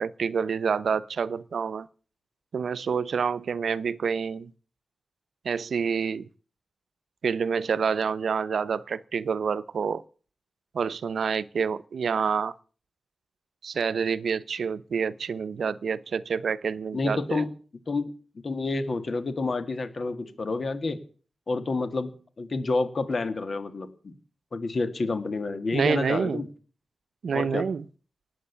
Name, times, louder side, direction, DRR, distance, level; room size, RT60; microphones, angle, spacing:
voice 1, 0.0-1.9 2.5-4.5 5.4-6.3 7.2-10.0 10.7-12.5 13.6-17.4 25.7-26.4 27.2-27.8, right 6 dB, 75° right, 0.7 m, -28 dB
voice 2, 16.9-17.5 17.9-18.1 18.4-21.0 21.5-22.1 22.4-24.2 24.5-26.5 27.3-27.6, left 3 dB, 50° left, 1.9 m, -29 dB
19.0 x 8.0 x 8.2 m
wide cardioid pair, 120°, 0 cm